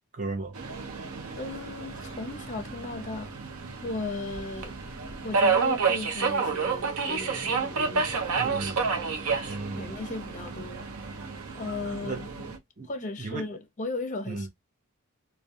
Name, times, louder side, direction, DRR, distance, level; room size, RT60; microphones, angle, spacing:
voice 1, 0.1-0.6 8.4-8.9 9.4-9.9 12.0-12.2 12.8-12.9 13.2-13.4 14.3-14.5, right 3 dB, 35° right, 0.6 m, -34 dB
Subway metro underground, 0.5-12.6, right 5 dB, 85° right, 0.6 m, -30 dB
voice 2, 1.4-3.3 3.8-4.7 5.2-8.5 9.8-11.2 11.5-12.4 12.9-14.5, left 2 dB, 35° left, 0.5 m, -36 dB
2.3 x 2.1 x 2.6 m
head